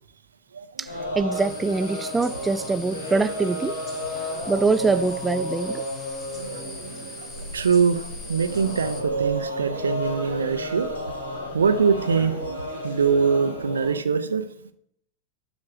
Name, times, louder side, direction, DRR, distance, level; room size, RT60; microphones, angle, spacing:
sound 1, 0.8-13.9, equal, 80° left, 3.0 m, -32 dB
voice 1, 0.8-3.8 4.5-5.8, right 3 dB, 10° right, 0.4 m, -24 dB
sound 2, 1.3-9.0, left 2 dB, 20° left, 1.5 m, -42 dB
voice 2, 6.3-11.1 11.5-14.4, right 6 dB, 70° right, 0.6 m, -24 dB
12.0 x 4.3 x 4.9 m
figure-of-eight pair, 90°, 0 cm